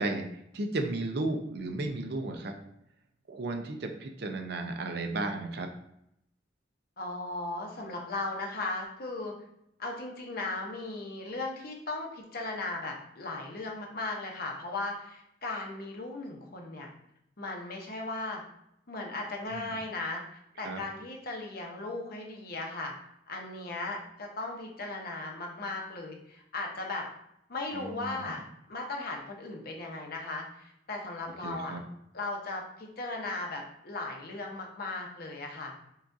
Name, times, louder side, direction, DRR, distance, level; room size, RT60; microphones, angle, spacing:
voice 1, 0.0-2.6 3.3-5.7 19.5-19.8 20.6-20.8 27.7-28.4 31.4-31.8, right 2 dB, 65° right, 5 dB, 0.6 m, -34 dB
voice 2, 7.0-9.3 9.8-16.9 17.4-18.4 18.9-20.2 20.6-22.9 23.3-27.1 27.5-28.4 28.7-31.7 32.1-35.7, left 2 dB, 55° left, 1 dB, 0.8 m, -37 dB
5.6 x 2.4 x 2.6 m, 0.76 s
head